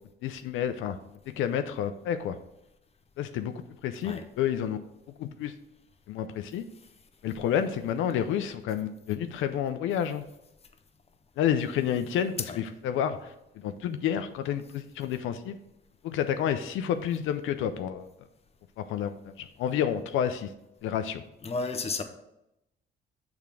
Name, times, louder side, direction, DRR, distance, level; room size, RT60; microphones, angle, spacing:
voice 1, 0.2-1.0 1.4-2.4 3.2-3.5 3.8-4.8 5.2-5.5 6.1-6.6 7.2-10.2 11.4-15.6 16.0-18.1 18.8-20.5 20.8-21.2, left 9 dB, 85° left, 8 dB, 0.5 m, -30 dB
voice 2, 21.4-22.0, left 3 dB, 30° left, 7 dB, 0.8 m, -32 dB
6.7 x 3.5 x 6.0 m, 0.86 s
cardioid pair, 90°, 20 cm